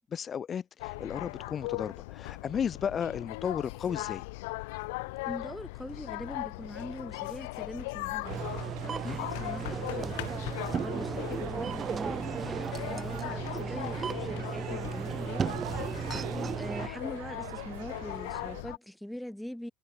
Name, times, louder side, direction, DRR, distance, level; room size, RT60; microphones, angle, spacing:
voice 1, 0.1-4.2 9.0-9.2 16.1-16.5, left 7 dB, 30° left, 0.8 m, -34 dB
sound 1, 0.8-18.8, left 24 dB, 80° left, 0.5 m, -39 dB
voice 2, 5.2-15.7 16.0-19.7, equal, ahead, 2.7 m, -43 dB
sound 2, 8.2-18.6, right 23 dB, 80° right, 1.6 m, -45 dB
sound 3, 8.3-16.9, right 6 dB, 30° right, 0.5 m, -35 dB
supercardioid pair, 115°, 0 cm